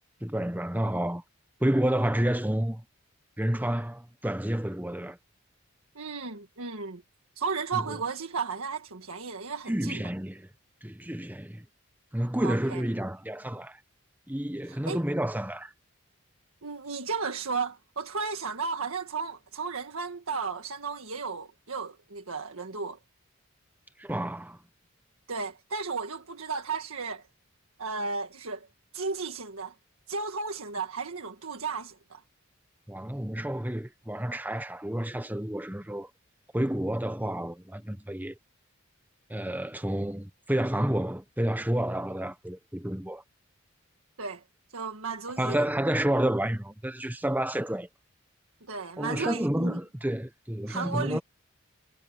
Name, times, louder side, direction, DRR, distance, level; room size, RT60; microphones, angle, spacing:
voice 1, 0.2-1.2 1.6-2.8 3.4-5.2 7.7-8.0 9.7-10.5 10.8-11.6 12.1-13.8 14.3-15.7 24.0-24.6 32.9-36.1 36.5-38.3 39.3-43.2 45.4-47.9 49.0-51.2, right 1 dB, 10° right, 1.1 m, -30 dB
voice 2, 5.9-7.0 7.3-10.0 12.4-12.8 14.6-15.0 16.6-23.0 25.3-27.3 27.8-28.7 28.9-29.7 30.1-32.2 44.2-44.4 44.7-45.7 48.7-49.8 50.7-51.2, right 4 dB, 85° right, 1.7 m, -34 dB
head